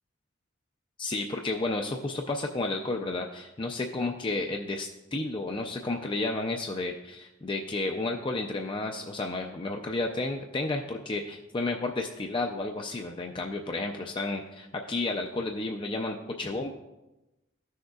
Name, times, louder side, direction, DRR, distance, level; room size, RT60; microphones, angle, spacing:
voice 1, 1.0-16.7, left 2 dB, 25° left, 3 dB, 0.4 m, -32 dB
14.0 x 6.4 x 2.3 m, 1.0 s
head